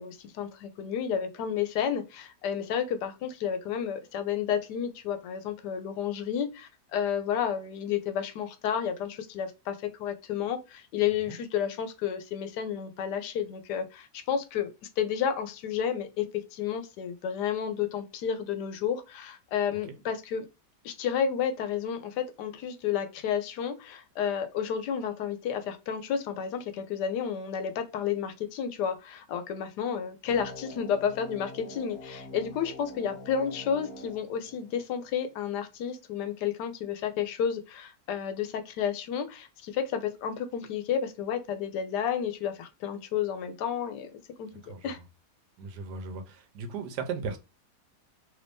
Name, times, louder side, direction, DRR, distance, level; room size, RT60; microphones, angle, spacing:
voice 1, 0.0-14.7 15.0-20.5 20.8-44.5 44.8-45.0, left 8 dB, 90° left, 1.2 m, -31 dB
sound 1, 30.3-35.3, left 1 dB, 40° left, 1.2 m, -45 dB
voice 2, 45.6-47.4, right 5 dB, 80° right, 1.3 m, -36 dB
3.2 x 2.6 x 3.4 m
omnidirectional pair, 1.8 m